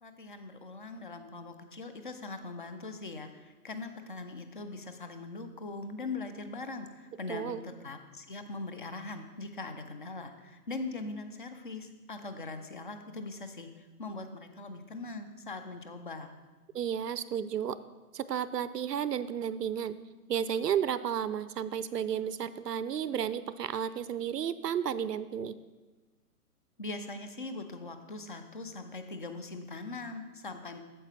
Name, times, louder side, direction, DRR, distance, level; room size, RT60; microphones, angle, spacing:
voice 1, 0.0-16.4 26.8-30.8, left 3 dB, 35° left, 8 dB, 0.4 m, -41 dB
voice 2, 7.3-7.6 16.7-17.8 18.1-20.0 20.3-25.6, right 8 dB, 90° right, 15 dB, 0.5 m, -32 dB
8.7 x 7.5 x 3.3 m, 1.2 s
figure-of-eight pair, 135°, 47 cm